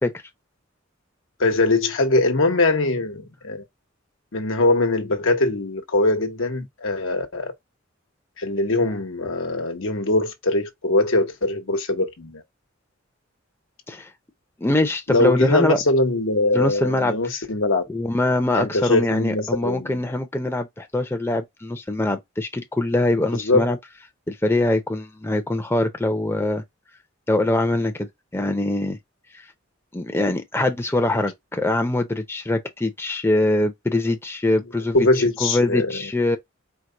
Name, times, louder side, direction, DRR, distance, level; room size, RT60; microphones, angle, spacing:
voice 1, 1.4-3.6 4.3-7.5 8.4-12.4 15.1-17.8 18.6-20.0 23.3-23.7 34.9-36.0, left 2 dB, 80° left, 1.1 m, -22 dB
voice 2, 14.6-15.8 16.5-17.2 17.9-23.8 24.3-26.6 27.3-28.1 28.3-29.0 29.9-35.0 35.4-36.4, left 2 dB, 10° left, 0.6 m, -23 dB
4.6 x 2.2 x 3.8 m
head